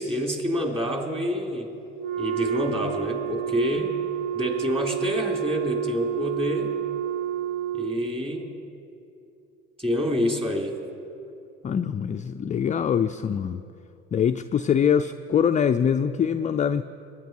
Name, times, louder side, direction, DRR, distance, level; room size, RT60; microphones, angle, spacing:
voice 1, 0.0-1.7 2.2-3.9 4.3-6.7 7.7-8.5 9.8-10.7, left 1 dB, 15° right, 1 dB, 3.2 m, -27 dB
Wind instrument woodwind instrument, 1.9-8.1, right 11 dB, 55° right, 0.7 m, -29 dB
voice 2, 11.6-13.6 14.1-16.8, left 8 dB, 25° left, 8 dB, 0.4 m, -23 dB
22.5 x 9.7 x 4.6 m, 2.7 s
hypercardioid pair, 70°, 33 cm